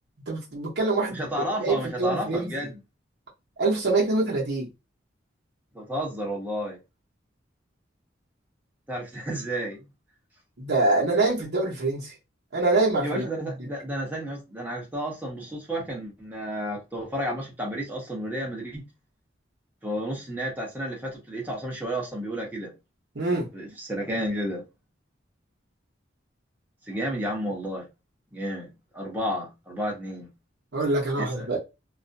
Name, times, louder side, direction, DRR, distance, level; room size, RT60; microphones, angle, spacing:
voice 1, 0.3-1.2 1.6-2.5 3.6-4.7 10.6-12.1 12.5-13.5 23.2-23.5 30.7-31.6, right 2 dB, 65° right, 0.8 m, -25 dB
voice 2, 1.1-2.8 5.7-6.8 8.9-9.9 13.0-18.8 19.8-22.7 23.5-24.6 26.8-27.8 28.3-30.3 31.2-31.5, equal, 10° right, 0.8 m, -32 dB
2.4 x 2.1 x 2.5 m
head